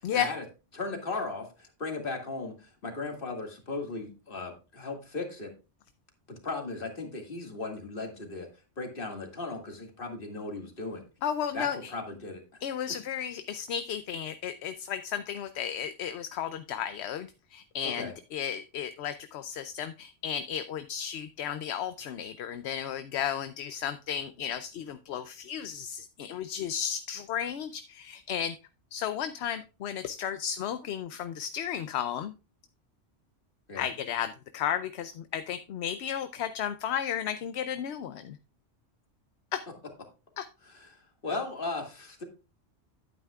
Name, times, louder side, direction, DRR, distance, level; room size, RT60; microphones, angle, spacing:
voice 1, 0.1-0.4 0.7-5.5 6.3-8.5 8.8-11.0 11.5-12.4 17.8-18.1 33.7-33.9 40.6-42.2, left 3 dB, 50° left, 3 dB, 2.1 m, -37 dB
voice 2, 11.2-11.9 12.6-28.6 28.9-32.3 33.8-38.4 39.5-39.6 40.4-40.5, left 9 dB, 70° left, 11 dB, 0.8 m, -34 dB
10.5 x 9.2 x 2.3 m, 0.30 s
omnidirectional pair, 1.2 m